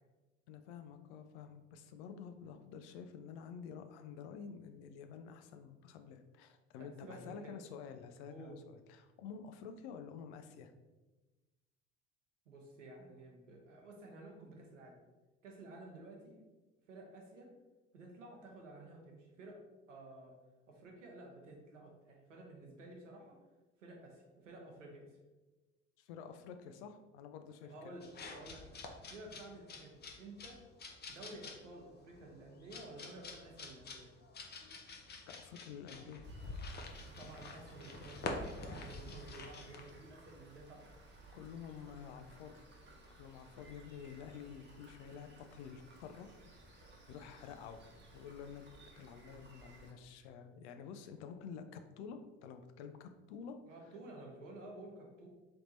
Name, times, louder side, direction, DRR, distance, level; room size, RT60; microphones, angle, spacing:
voice 1, 0.5-10.7 26.0-27.7 35.3-36.3 41.3-42.6 43.2-46.3 47.1-47.8 48.1-53.6, left 7 dB, 65° left, 8 dB, 0.5 m, -50 dB
voice 2, 6.8-7.6 8.3-8.6 12.5-15.0 15.4-16.4 16.9-17.5 17.9-19.6 19.9-20.4 20.7-23.4 23.8-25.2 27.6-28.8 29.1-30.6 31.1-34.1 37.2-40.9 53.7-55.3, right 2 dB, 85° right, 0 dB, 0.9 m, -52 dB
sound 1, 28.0-39.9, left 3 dB, 30° left, 0.6 m, -47 dB
Rain, 36.2-49.9, right 2 dB, 30° right, 1.0 m, -59 dB
3.5 x 2.8 x 4.0 m, 1.2 s
figure-of-eight pair, 60°, 36 cm